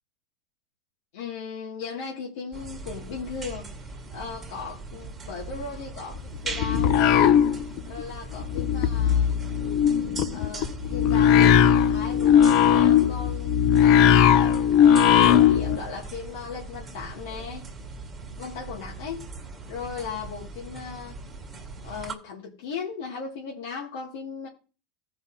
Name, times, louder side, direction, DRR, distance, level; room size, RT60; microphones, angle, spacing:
voice 1, 1.1-7.3 7.8-9.4 10.3-14.6 15.2-17.7 18.4-19.3 19.7-21.2 21.8-24.5, left 5 dB, 85° left, -3 dB, 2.2 m, -37 dB
sound 1, 2.5-22.1, right 3 dB, 15° right, 1.7 m, -40 dB
sound 2, 6.2-8.0 8.3-15.8, left 9 dB, 50° left, 0.5 m, -19 dB
16.0 x 5.7 x 2.8 m, 0.33 s
supercardioid pair, 165°, 0 cm